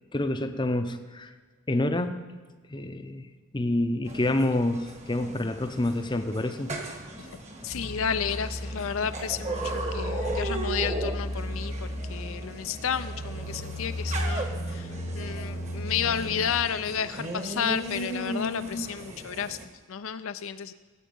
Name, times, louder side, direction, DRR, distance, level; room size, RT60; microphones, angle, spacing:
voice 1, 0.1-1.3 1.7-2.2 2.7-3.3 3.5-6.7, left 1 dB, 20° left, 8 dB, 0.6 m, -27 dB
sound 1, 4.1-19.6, right 1 dB, 30° right, 1.3 m, -37 dB
voice 2, 7.6-20.7, left 7 dB, 70° left, 11 dB, 0.5 m, -32 dB
sound 2, 7.7-16.5, equal, 90° left, 2.1 m, -34 dB
17.5 x 8.2 x 5.4 m, 1.4 s
head